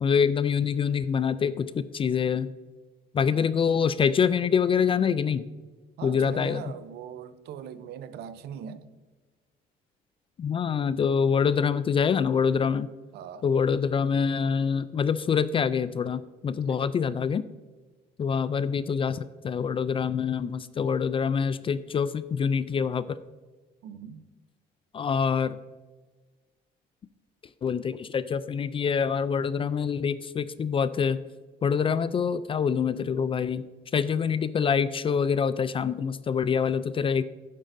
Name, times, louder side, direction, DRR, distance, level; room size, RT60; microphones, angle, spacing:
voice 1, 0.0-2.5 3.1-5.5 6.0-6.6 10.4-12.9 13.4-17.4 18.2-23.2 24.9-25.6 27.6-31.2 31.6-33.7 33.9-37.2, left 6 dB, 30° left, 0.4 m, -25 dB
voice 2, 6.0-8.9 13.1-13.5 16.6-16.8 23.8-24.2, right 8 dB, 75° right, 0.7 m, -41 dB
11.0 x 9.2 x 2.6 m
cardioid pair, 110°, 17 cm